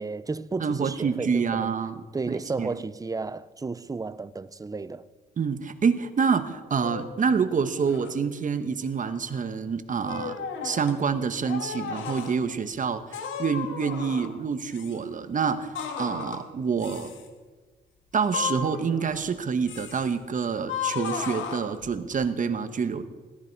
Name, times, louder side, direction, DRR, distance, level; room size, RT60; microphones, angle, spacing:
voice 1, 0.0-1.8 2.1-5.0, right 4 dB, 15° right, 0.5 m, -33 dB
voice 2, 0.6-2.0 2.3-2.7 5.4-17.1 18.1-23.0, right 6 dB, 40° right, 1.2 m, -27 dB
sound 1, 6.8-7.2 7.8-8.2 8.8-9.4 10.1-11.0 11.4-12.4 13.1-14.4 14.7-15.0 15.7-16.5 16.8-17.3 18.2-19.3 19.7-20.1 20.7-22.1, left 7 dB, 75° left, 1.8 m, -34 dB
17.5 x 14.0 x 4.7 m
cardioid pair, 90°, 20 cm